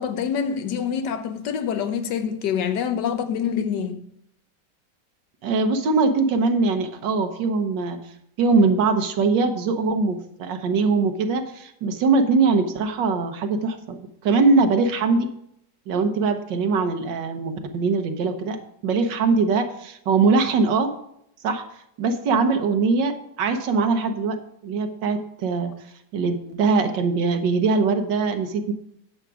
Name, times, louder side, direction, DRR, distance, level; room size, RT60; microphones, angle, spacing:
voice 1, 0.0-4.1, left 7 dB, 75° left, 1.4 m, -26 dB
voice 2, 5.4-8.0 8.4-15.3 15.9-18.6 18.8-20.9 21.4-21.6 22.0-24.4 24.6-25.7 26.1-28.7, right 4 dB, 90° right, 1.7 m, -22 dB
9.7 x 7.2 x 4.9 m
omnidirectional pair, 1.9 m